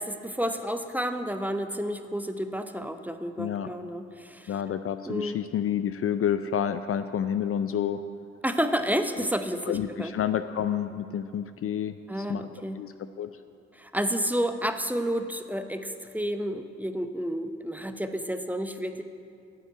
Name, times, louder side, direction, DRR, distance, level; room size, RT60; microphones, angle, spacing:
voice 1, 0.0-4.5 5.0-5.4 8.4-10.1 12.1-12.8 13.7-19.0, equal, 5° right, 8 dB, 0.8 m, -30 dB
voice 2, 3.4-3.7 4.5-8.0 9.7-12.4 12.8-13.3, left 9 dB, 40° left, 11 dB, 0.5 m, -29 dB
9.7 x 7.8 x 8.0 m, 2.5 s
hypercardioid pair, 40°, 35 cm